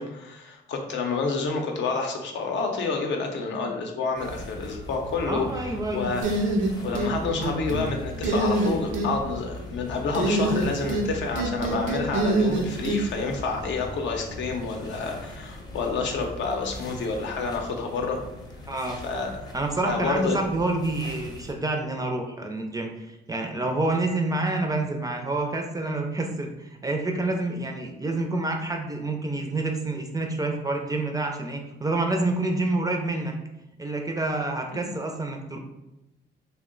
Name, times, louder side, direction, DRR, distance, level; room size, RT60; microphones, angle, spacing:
voice 1, 0.0-6.2 6.8-18.2 19.0-19.4 19.9-20.4 34.7-34.8, left 4 dB, 70° left, 2 dB, 0.6 m, -29 dB
sound 1, 4.2-21.5, left 1 dB, 20° left, 0.6 m, -40 dB
voice 2, 5.2-6.1 18.7-19.0 19.5-33.3 33.8-35.6, right 2 dB, 20° right, 3 dB, 0.4 m, -28 dB
sound 2, 6.2-7.1 7.4-7.9 8.2-9.1 10.1-11.1 11.3-13.0, right 2 dB, 80° right, 0.5 m, -24 dB
2.6 x 2.1 x 3.7 m, 0.93 s
cardioid pair, 90°, 20 cm